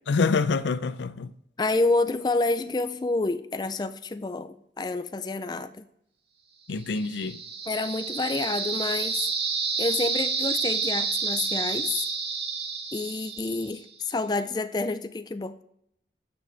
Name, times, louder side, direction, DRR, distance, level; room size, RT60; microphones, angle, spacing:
voice 1, 0.1-1.3 6.7-7.4, left 4 dB, 85° left, 0.5 m, -26 dB
voice 2, 1.6-5.8 7.7-9.3 9.8-12.1 12.9-15.6, left 3 dB, 25° left, 0.3 m, -28 dB
sound 1, 6.9-13.8, right 5 dB, 70° right, 1.7 m, -29 dB
9.2 x 6.3 x 3.3 m
head